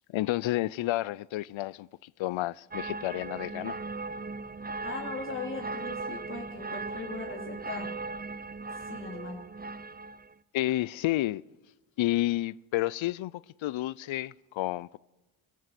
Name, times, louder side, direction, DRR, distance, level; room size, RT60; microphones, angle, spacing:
voice 1, 0.1-3.8 10.5-11.4 12.0-15.0, left 16 dB, 70° left, 0.6 m, -30 dB
sound 1, 2.7-10.3, right 3 dB, 20° right, 0.8 m, -38 dB
voice 2, 4.8-7.9 8.7-9.4, left 3 dB, 25° left, 3.5 m, -39 dB
28.0 x 17.5 x 6.0 m
supercardioid pair, 50°, 48 cm